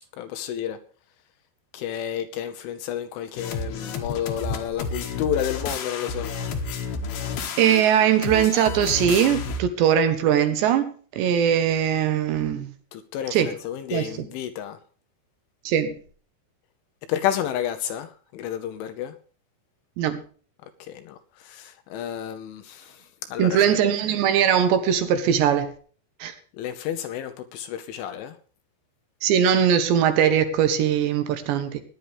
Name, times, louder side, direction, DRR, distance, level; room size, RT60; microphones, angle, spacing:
voice 1, 0.2-0.8 1.7-6.3 12.9-14.8 17.1-19.1 20.8-23.0 23.3-23.9 26.6-28.4, left 10 dB, 75° left, 9 dB, 3.1 m, -31 dB
sound 1, 3.4-9.6, left 4 dB, 60° left, 2.9 m, -31 dB
voice 2, 7.6-12.7 13.3-13.5 13.9-14.3 15.6-16.0 20.0-20.2 23.4-25.7 26.2-26.3 29.2-31.8, right 9 dB, 70° right, 10 dB, 3.1 m, -21 dB
18.0 x 11.0 x 3.4 m, 0.41 s
omnidirectional pair, 6.0 m